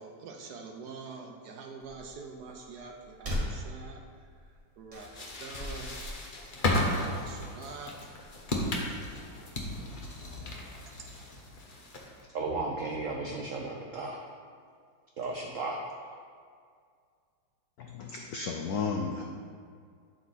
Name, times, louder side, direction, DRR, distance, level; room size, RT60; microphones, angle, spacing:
voice 1, 0.0-4.0 4.8-5.9 6.7-8.1 11.0-11.1, right 4 dB, 65° right, 2 dB, 1.0 m, -45 dB
sound 1, 1.8-9.3, left 1 dB, 25° right, 0.9 m, -43 dB
sound 2, 4.9-12.2, left 1 dB, 45° left, 0.6 m, -34 dB
voice 2, 12.3-14.2 15.2-15.8, right 3 dB, 85° right, 1 dB, 0.7 m, -34 dB
voice 3, 17.8-19.2, left 5 dB, 85° left, 2 dB, 0.8 m, -33 dB
11.5 x 4.7 x 4.1 m, 2.1 s
omnidirectional pair, 2.3 m